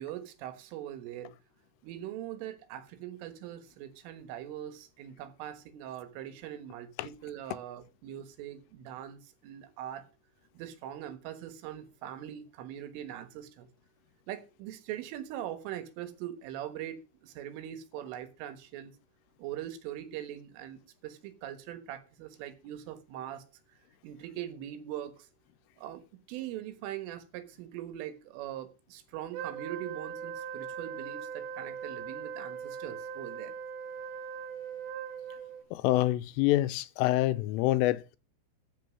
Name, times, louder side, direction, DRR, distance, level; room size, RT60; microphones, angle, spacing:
voice 1, 0.0-1.3 1.8-10.1 10.6-13.7 14.3-18.9 19.4-23.5 24.0-25.3 25.8-33.6, right 11 dB, 85° right, 4.0 m, -42 dB
Wind instrument woodwind instrument, 29.3-35.6, right 7 dB, 65° right, 4.0 m, -40 dB
voice 2, 35.7-38.2, left 16 dB, 85° left, 3.3 m, -26 dB
13.5 x 6.0 x 6.2 m
omnidirectional pair, 5.6 m